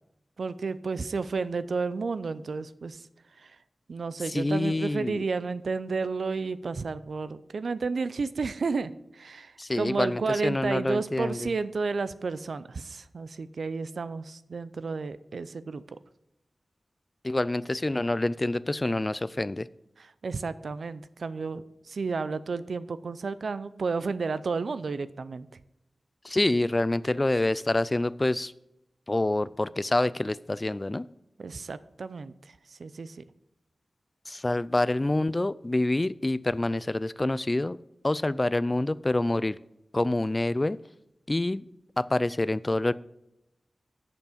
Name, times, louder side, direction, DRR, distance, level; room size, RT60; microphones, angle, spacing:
voice 1, 0.4-3.0 3.4-3.6 3.9-15.8 20.0-25.5 31.4-32.3 32.7-33.2, right 4 dB, 80° right, 14 dB, 0.5 m, -32 dB
voice 2, 4.3-5.2 9.6-11.5 17.2-19.7 26.2-28.5 29.1-31.1 34.3-37.8 38.0-39.6 39.9-40.8 41.3-41.6 42.0-42.9, left 2 dB, 25° left, 18 dB, 0.3 m, -27 dB
8.2 x 7.0 x 5.1 m, 0.84 s
wide cardioid pair, 75°, 0 cm